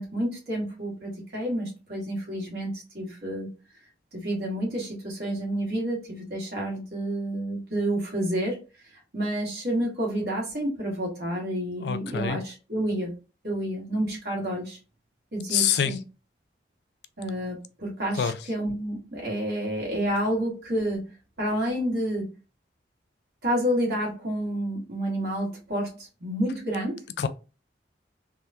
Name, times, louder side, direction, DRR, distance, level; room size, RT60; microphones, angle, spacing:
voice 1, 0.0-3.5 4.1-8.6 8.9-13.1 13.4-14.8 15.3-16.0 17.2-21.0 21.4-22.3 23.4-27.0, right 1 dB, 60° right, 1.5 m, -29 dB
voice 2, 11.8-12.4 15.5-16.0 18.2-18.4 27.2-27.3, left 8 dB, 70° left, 0.3 m, -25 dB
3.4 x 2.2 x 2.7 m
head